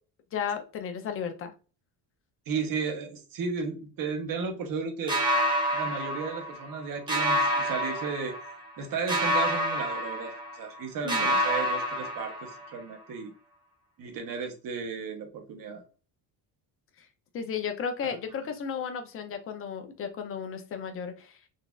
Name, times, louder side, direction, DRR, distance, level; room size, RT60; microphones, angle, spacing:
voice 1, 0.3-1.5 11.0-11.4 17.0-17.1 17.3-21.4, left 7 dB, 30° left, 7 dB, 0.4 m, -34 dB
voice 2, 2.5-5.2 5.7-8.3 8.8-13.3 14.0-15.8 18.0-18.1, right 5 dB, 50° right, 5 dB, 0.8 m, -34 dB
sound 1, 5.1-6.8 7.1-8.7 9.1-10.8 11.1-12.8, equal, 10° right, 0.8 m, -28 dB
4.0 x 2.3 x 2.3 m, 0.35 s
cardioid pair, 160°, 45 cm